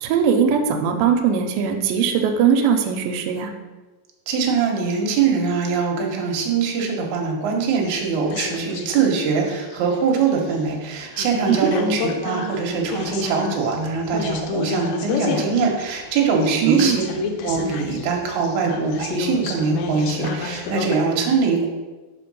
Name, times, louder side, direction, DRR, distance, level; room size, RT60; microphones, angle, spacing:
voice 1, 0.0-3.5 11.5-11.7 16.6-17.0, right 7 dB, 90° right, 5 dB, 2.4 m, -20 dB
voice 2, 4.3-17.0 17.4-21.7, right 5 dB, 70° right, 0 dB, 2.1 m, -22 dB
sound 1, 7.8-9.1 9.5-10.6 11.0-21.0, left 5 dB, 80° left, 2.3 m, -30 dB
5.7 x 4.3 x 5.3 m, 1.2 s
omnidirectional pair, 4.1 m